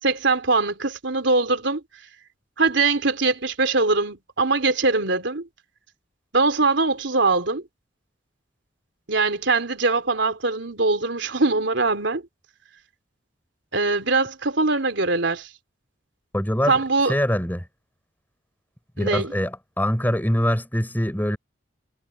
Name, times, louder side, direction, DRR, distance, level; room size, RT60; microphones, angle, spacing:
voice 1, 0.0-1.8 2.6-5.5 6.3-7.6 9.1-12.2 13.7-15.5 16.7-17.2 19.0-19.3, right 3 dB, 75° right, 3.2 m, -22 dB
voice 2, 16.3-16.8 17.1-17.6 19.0-21.4, equal, 10° left, 5.5 m, -23 dB
head